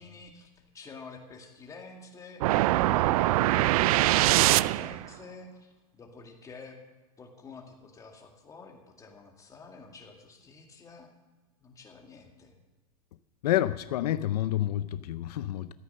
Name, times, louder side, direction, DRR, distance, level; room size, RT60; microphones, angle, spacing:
voice 1, 0.0-2.5 2.8-6.8 7.2-11.1 11.6-12.6, left 4 dB, 15° left, 2 dB, 2.1 m, -49 dB
sound 1, 2.4-5.1, right 16 dB, 65° right, 0.4 m, -23 dB
voice 2, 13.4-15.7, left 13 dB, 85° left, 14 dB, 0.5 m, -28 dB
13.5 x 9.4 x 6.6 m, 1.2 s
supercardioid pair, 135°, 20 cm